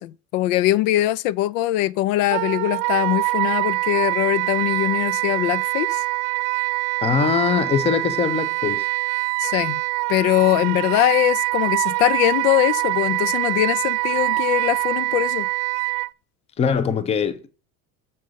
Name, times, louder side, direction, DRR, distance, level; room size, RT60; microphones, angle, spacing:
voice 1, 0.0-6.0 9.4-9.8 10.1-15.5, left 15 dB, 80° left, 0.5 m, -22 dB
Wind instrument woodwind instrument, 2.3-16.1, right 24 dB, 75° right, 0.5 m, -24 dB
voice 2, 7.0-8.9 16.6-17.5, left 6 dB, 15° left, 0.5 m, -22 dB
6.8 x 5.5 x 6.3 m
cardioid pair, 155°, 40 cm